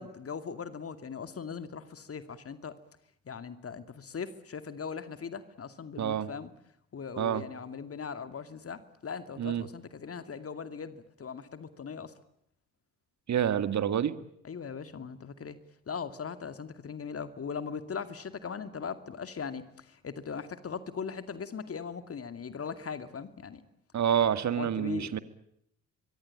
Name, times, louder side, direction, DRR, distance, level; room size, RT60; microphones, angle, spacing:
voice 1, 0.0-2.7 3.3-6.5 6.9-12.1 14.4-15.6 15.9-23.6 24.2-24.3 24.6-25.2, left 6 dB, 35° left, 11 dB, 2.4 m, -39 dB
voice 2, 6.0-6.3 7.2-7.4 9.4-9.6 13.3-14.1 23.9-25.2, right 9 dB, 45° right, 13 dB, 2.0 m, -28 dB
25.0 x 24.0 x 8.8 m, 0.74 s
figure-of-eight pair, 50°, 40 cm